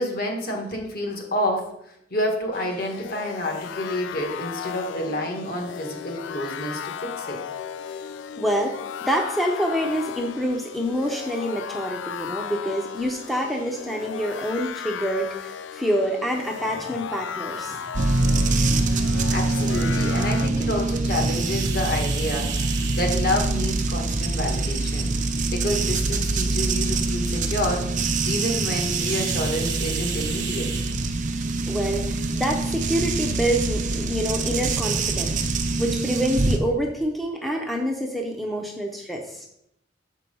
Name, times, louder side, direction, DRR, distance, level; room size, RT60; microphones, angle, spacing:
voice 1, 0.0-7.4 19.3-27.9 28.2-30.7, left 1 dB, 50° left, 2 dB, 1.6 m, -29 dB
sound 1, 2.5-20.5, left 8 dB, 70° left, 0.3 m, -35 dB
voice 2, 8.4-17.9 31.7-35.4 35.8-39.5, equal, ahead, 1 dB, 0.6 m, -27 dB
sound 2, 17.9-36.6, right 3 dB, 40° right, 0.5 m, -24 dB
sound 3, 21.1-35.2, right 5 dB, 60° right, 0.9 m, -38 dB
6.6 x 4.6 x 5.4 m, 0.76 s
head